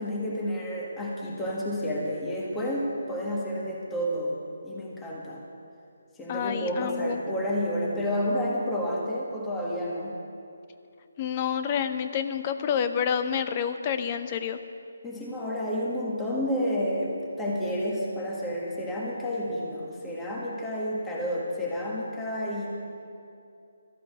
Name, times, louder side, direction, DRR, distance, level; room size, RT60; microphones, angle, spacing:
voice 1, 0.0-4.4 4.6-5.4 6.2-10.1 15.0-22.7, equal, 10° left, -4 dB, 1.7 m, -30 dB
voice 2, 6.3-7.2 11.2-14.6, left 8 dB, 30° left, 9 dB, 0.7 m, -28 dB
13.5 x 8.6 x 8.1 m, 2.6 s
figure-of-eight pair, 155°, 0 cm